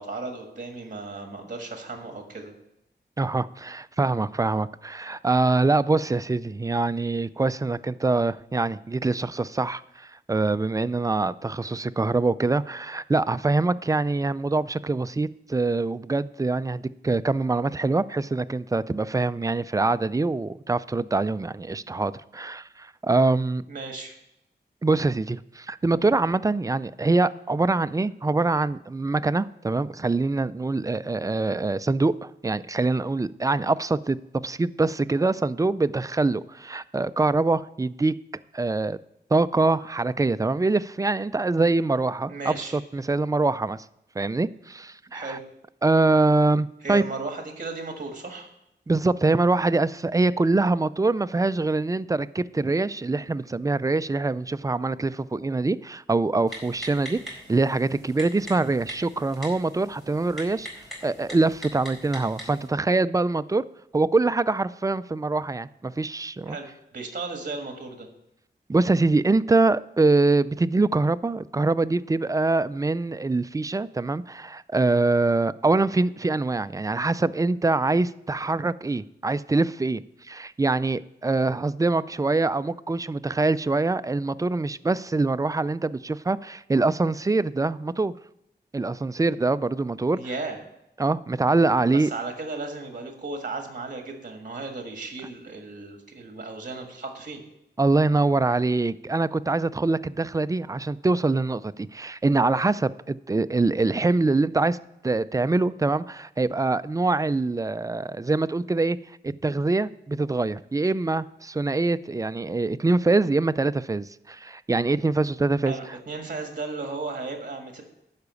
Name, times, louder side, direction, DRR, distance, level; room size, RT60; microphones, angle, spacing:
voice 1, 0.0-2.5 23.7-24.2 42.3-42.8 45.1-45.4 46.8-48.5 66.5-66.7 66.9-68.1 90.2-90.6 91.9-97.4 115.7-117.8, right 3 dB, 50° right, 4 dB, 1.6 m, -35 dB
voice 2, 3.2-23.6 24.8-34.2 34.4-38.1 38.5-39.0 39.3-43.8 44.2-45.4 45.8-47.0 48.9-60.7 61.0-63.6 63.9-66.6 68.7-80.0 80.3-88.1 88.7-90.2 91.0-92.1 97.8-104.8 105.0-109.0 109.2-116.0, right 3 dB, 20° right, 15 dB, 0.3 m, -24 dB
Typing, 56.5-62.7, equal, ahead, 4.4 m, -42 dB
12.0 x 4.9 x 8.2 m, 0.83 s
wide cardioid pair, 90°, 18 cm